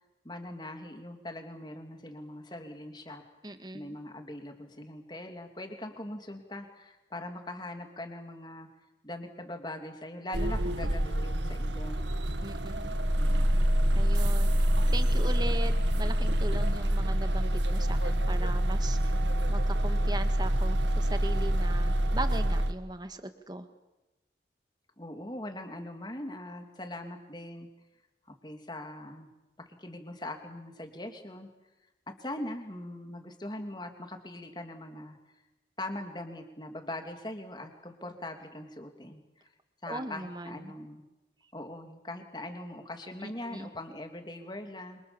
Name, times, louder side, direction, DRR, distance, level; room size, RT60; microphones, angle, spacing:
voice 1, 0.2-3.2 3.7-8.7 9.0-12.0 13.2-13.6 25.0-27.7 28.4-29.3 29.6-31.5 32.1-35.2 35.8-39.5 39.8-41.1 41.5-45.0, left 1 dB, 25° left, 5 dB, 3.1 m, -41 dB
voice 2, 3.4-4.0 12.4-13.0 14.0-19.2 19.5-23.7 39.9-40.7 43.2-43.7, right 1 dB, 25° right, 8 dB, 2.0 m, -39 dB
sound 1, 10.3-22.7, equal, 90° right, 2.0 m, -26 dB
27.5 x 27.5 x 7.3 m, 1.0 s
head